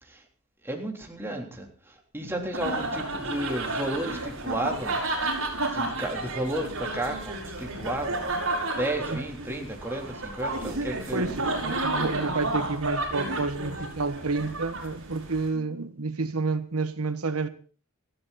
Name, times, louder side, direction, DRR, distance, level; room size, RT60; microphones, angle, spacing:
voice 1, 0.6-5.0 5.7-8.3 8.7-11.4, right 1 dB, 10° right, 3.4 m, -33 dB
sound 1, 2.5-15.5, right 2 dB, 65° right, 7.3 m, -31 dB
voice 2, 11.1-17.5, right 3 dB, 85° right, 1.4 m, -30 dB
19.5 x 15.0 x 4.2 m
head